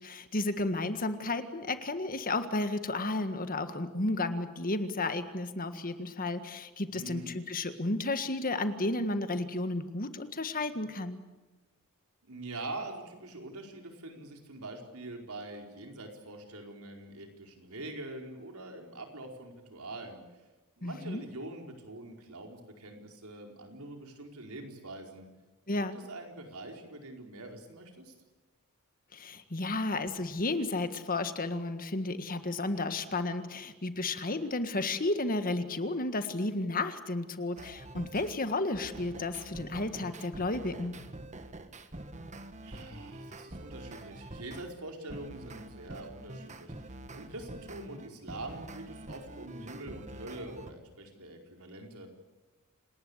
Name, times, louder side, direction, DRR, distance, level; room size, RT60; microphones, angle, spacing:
voice 1, 0.0-11.2 20.8-21.2 25.7-26.0 29.1-41.0, left 2 dB, 40° left, 10 dB, 1.7 m, -32 dB
voice 2, 6.9-7.4 12.2-20.2 20.8-25.3 25.7-28.1 42.6-52.1, right 2 dB, 80° right, 3 dB, 4.7 m, -44 dB
sound 1, 37.6-38.3 38.7-44.7 45.1-50.7, right 1 dB, 35° right, 1.6 m, -46 dB
28.5 x 19.5 x 8.2 m, 1.2 s
head